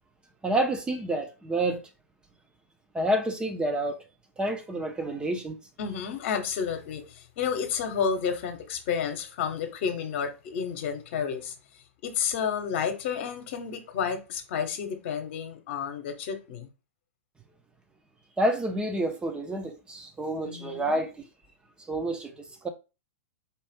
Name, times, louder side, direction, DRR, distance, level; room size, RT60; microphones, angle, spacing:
voice 1, 0.4-1.8 2.9-4.0 4.4-5.6 18.4-21.1 21.9-22.4 22.6-22.7, right 1 dB, 10° right, 0.7 m, -28 dB
voice 2, 5.8-11.5 12.0-16.7 20.4-21.1, left 7 dB, 50° left, 1.0 m, -31 dB
4.4 x 2.5 x 3.6 m
figure-of-eight pair, 105°, 8 cm